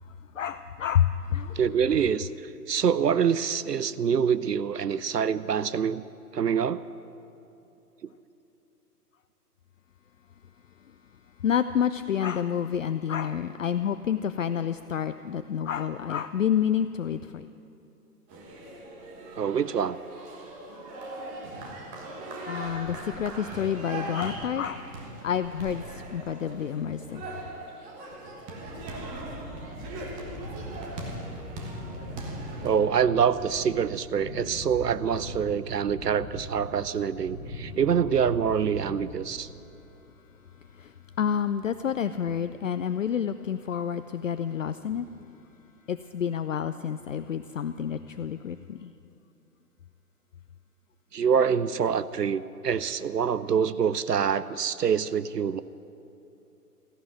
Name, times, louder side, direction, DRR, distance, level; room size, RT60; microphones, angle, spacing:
voice 1, 0.3-1.6 11.4-17.5 22.5-27.4 40.7-45.3 45.9-48.9, left 8 dB, 55° left, 11 dB, 0.5 m, -29 dB
voice 2, 1.6-6.0 6.3-6.8 19.4-20.0 32.6-39.5 51.1-55.6, right 7 dB, 80° right, 16 dB, 0.6 m, -25 dB
sound 1, 18.3-32.7, right 2 dB, 15° right, 1.3 m, -40 dB
sound 2, 28.6-39.7, left 1 dB, 20° left, 1.9 m, -41 dB
14.5 x 11.0 x 9.3 m, 2.9 s
figure-of-eight pair, 125°, 47 cm